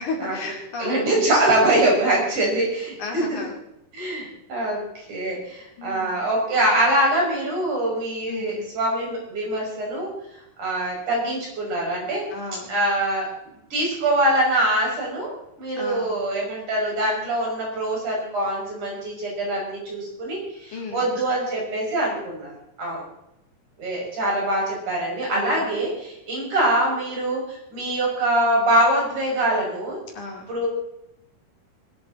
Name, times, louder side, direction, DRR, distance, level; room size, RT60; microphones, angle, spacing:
voice 1, 0.0-1.2 3.0-3.5 5.8-6.3 8.3-8.7 12.3-12.7 15.8-16.2 20.7-21.2 25.3-25.7 30.2-30.5, left 3 dB, 60° left, 1 dB, 3.8 m, -34 dB
voice 2, 0.8-3.4 3.9-10.1 10.6-12.2 12.7-13.3 13.7-15.3 15.6-22.5 22.8-23.0 23.8-30.0 30.5-30.7, right 1 dB, 60° right, -2 dB, 7.4 m, -23 dB
21.0 x 12.5 x 4.1 m, 0.81 s
omnidirectional pair, 3.9 m